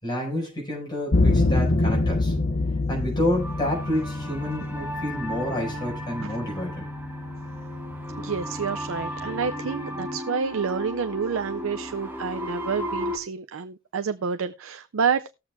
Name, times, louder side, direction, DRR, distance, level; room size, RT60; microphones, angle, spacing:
voice 1, 0.0-2.3 2.9-6.9, left 1 dB, 20° left, 5.3 m, -29 dB
sound 1, 1.1-10.2, left 2 dB, 55° left, 0.8 m, -27 dB
sound 2, 3.3-13.2, equal, 10° right, 1.6 m, -35 dB
voice 2, 8.2-15.3, right 6 dB, 85° right, 0.5 m, -29 dB
19.0 x 7.3 x 2.3 m
head